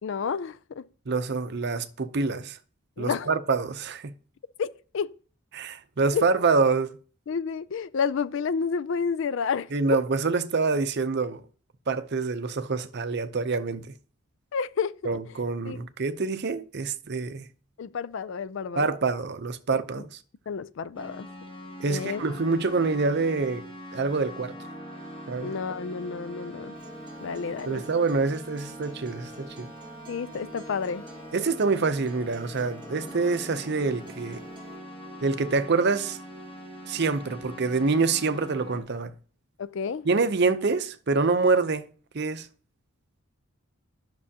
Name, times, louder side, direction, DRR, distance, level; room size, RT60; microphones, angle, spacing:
voice 1, 0.0-0.8 3.0-3.3 4.6-5.1 6.1-6.2 7.3-10.0 14.5-15.0 15.6-15.8 17.8-19.0 19.7-20.1 20.5-21.3 21.9-22.2 25.4-26.8 27.2-27.8 30.1-31.0 39.6-40.1, left 6 dB, 60° left, 0.4 m, -30 dB
voice 2, 1.1-2.6 3.0-4.1 5.5-7.0 9.7-11.4 11.9-13.9 15.0-17.5 18.8-20.2 21.8-24.6 25.3-25.5 27.7-29.7 31.3-34.4 35.2-36.2 36.9-39.1 40.0-41.9 42.1-42.5, right 4 dB, 50° right, 0.6 m, -26 dB
sound 1, 20.9-38.8, equal, 25° left, 1.8 m, -43 dB
Acoustic guitar, 26.8-34.8, right 1 dB, 20° right, 1.1 m, -50 dB
11.0 x 6.1 x 2.8 m
head